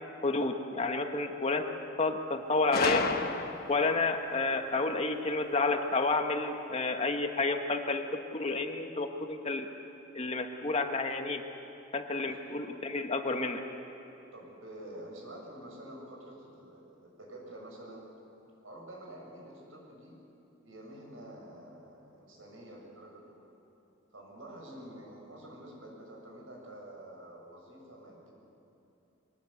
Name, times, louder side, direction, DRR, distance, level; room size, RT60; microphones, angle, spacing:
voice 1, 0.2-1.7 2.0-3.1 3.7-9.7 10.1-11.4 11.9-13.6, left 3 dB, 30° left, 5 dB, 1.3 m, -30 dB
Gunshot gunfire, 2.7-3.9, left 4 dB, 50° left, 1.2 m, -31 dB
voice 2, 12.1-12.7 14.3-18.1 18.6-20.2 20.6-23.5 24.1-28.3, right 1 dB, 85° right, -2 dB, 6.9 m, -48 dB
23.5 x 19.5 x 8.4 m, 2.9 s
head